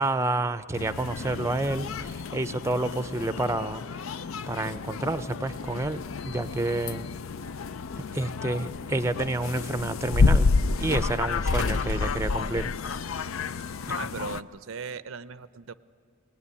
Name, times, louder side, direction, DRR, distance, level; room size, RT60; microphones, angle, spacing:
voice 1, 0.0-3.8 4.5-7.1 8.0-10.5 10.8-12.7 13.9-14.0, right 2 dB, 15° right, 12 dB, 0.5 m, -29 dB
sound 1, 0.7-14.4, left 4 dB, 85° left, 0.5 m, -29 dB
sound 2, 11.5-12.8 14.1-14.2, left 1 dB, 40° left, 1.6 m, -40 dB
voice 2, 13.9-15.7, right 5 dB, 80° right, 15 dB, 0.6 m, -38 dB
22.5 x 18.5 x 9.8 m, 2.2 s
head